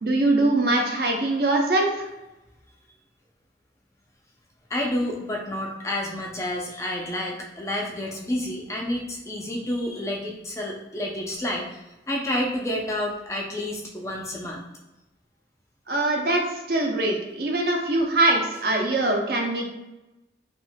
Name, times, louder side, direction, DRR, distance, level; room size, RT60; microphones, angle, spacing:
voice 1, 0.0-2.0 15.9-16.4 16.7-19.7, right 2 dB, 55° right, 1 dB, 0.6 m, -22 dB
voice 2, 4.7-14.6, left 1 dB, 15° left, -1 dB, 0.5 m, -29 dB
4.5 x 2.5 x 2.2 m, 1.0 s
head